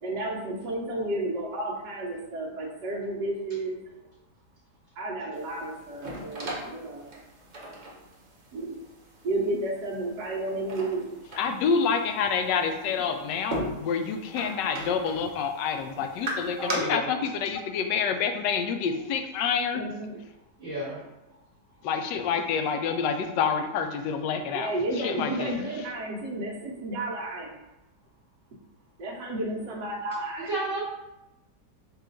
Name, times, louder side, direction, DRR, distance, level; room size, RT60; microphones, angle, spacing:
voice 1, 0.0-3.8 5.0-7.1 8.5-8.8 9.2-11.2 19.7-20.2 24.5-27.5 29.0-30.5, right 2 dB, 70° right, -6 dB, 1.4 m, -32 dB
sound 1, 5.3-16.7, right 1 dB, 45° right, 0.5 m, -40 dB
voice 2, 11.4-19.8 21.8-24.7 25.0-25.5, left 6 dB, 85° left, 6 dB, 1.2 m, -28 dB
voice 3, 16.6-17.1 20.6-21.0 30.5-30.8, right 1 dB, 30° right, -7 dB, 1.7 m, -31 dB
5.5 x 2.5 x 3.8 m, 0.95 s
omnidirectional pair, 1.9 m